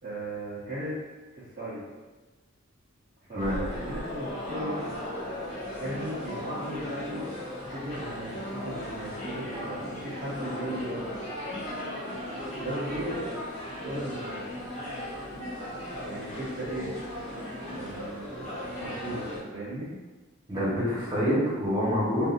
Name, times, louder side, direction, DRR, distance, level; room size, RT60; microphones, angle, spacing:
voice 1, 0.0-0.9 1.4-1.8 3.2-4.9 5.8-7.3 7.6-8.3 8.6-11.1 11.6-11.8 12.3-13.2 13.8-14.5 15.8-17.0 17.7-19.9, right 1 dB, 35° right, -12 dB, 0.8 m, -37 dB
sound 1, 3.4-19.4, left 1 dB, 30° left, 1.2 m, -36 dB
voice 2, 20.5-22.3, equal, 20° right, -9 dB, 1.3 m, -26 dB
3.8 x 2.6 x 2.5 m, 1.2 s
head